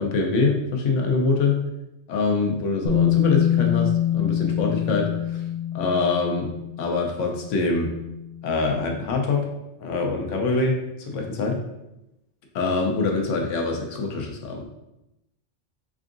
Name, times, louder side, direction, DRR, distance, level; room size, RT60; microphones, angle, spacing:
voice 1, 0.0-1.6 2.1-5.4 5.7-6.5 6.8-7.9 8.4-9.5 9.8-11.6 12.5-14.7, left 3 dB, 85° left, 2 dB, 1.0 m, -24 dB
Bass guitar, 2.9-8.9, left 10 dB, 60° left, 0.6 m, -25 dB
3.7 x 3.5 x 2.5 m, 0.89 s
omnidirectional pair, 1.2 m